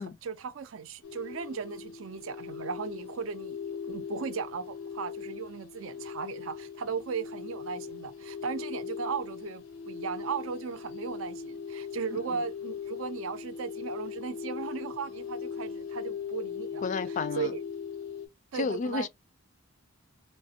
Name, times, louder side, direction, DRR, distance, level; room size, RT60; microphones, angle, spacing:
voice 1, 0.0-17.6 18.5-19.1, right 5 dB, 70° right, 0.5 m, -37 dB
sound 1, 1.0-18.3, left 6 dB, 80° left, 0.6 m, -39 dB
voice 2, 16.8-17.5 18.5-19.1, left 4 dB, 40° left, 0.3 m, -31 dB
3.2 x 2.0 x 2.7 m
head